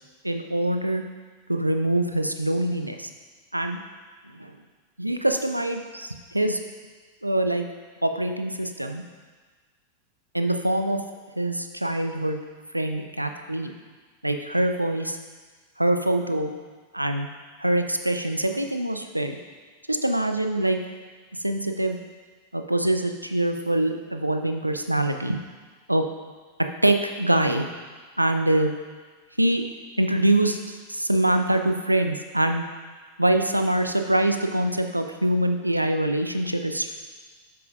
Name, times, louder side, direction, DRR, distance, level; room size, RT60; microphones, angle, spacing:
voice 1, 0.2-1.0 1.5-3.1 3.5-3.8 4.4-4.5 5.0-6.6 7.2-7.6 8.0-9.0 10.3-11.0 11.4-12.4 12.7-13.7 14.2-15.2 15.8-16.5 16.9-17.3 17.6-19.4 19.9-20.8 21.4-22.0 22.5-25.4 25.9-26.0 26.8-27.7 28.2-28.7 29.4-29.6 30.0-32.7 33.2-36.9, right 1 dB, 85° right, 6 dB, 0.6 m, -24 dB
11.5 x 8.5 x 2.5 m, 1.4 s
figure-of-eight pair, 90°, 0 cm